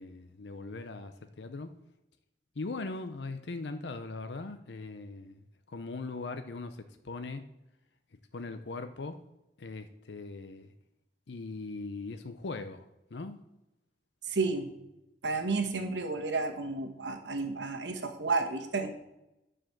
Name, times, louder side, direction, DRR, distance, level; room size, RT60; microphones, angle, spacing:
voice 1, 0.0-1.8 2.6-7.4 8.3-9.2 9.6-10.7 11.3-12.9 13.1-13.4, left 3 dB, 75° left, 9 dB, 0.6 m, -40 dB
voice 2, 14.2-14.7 15.2-18.9, right 3 dB, 90° right, 6 dB, 1.2 m, -31 dB
10.0 x 5.0 x 5.9 m, 0.91 s
head